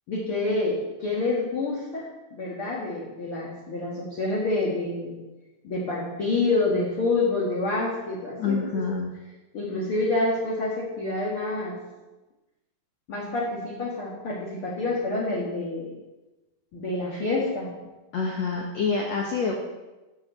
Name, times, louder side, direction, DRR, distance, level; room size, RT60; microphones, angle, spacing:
voice 1, 0.1-5.2 5.6-8.8 9.5-11.8 13.1-15.9 16.7-17.7, left 2 dB, 45° left, -4 dB, 1.8 m, -27 dB
voice 2, 8.4-9.1 18.1-19.5, left 5 dB, 90° left, 0 dB, 1.5 m, -27 dB
10.5 x 6.4 x 7.5 m, 1.1 s
omnidirectional pair, 4.8 m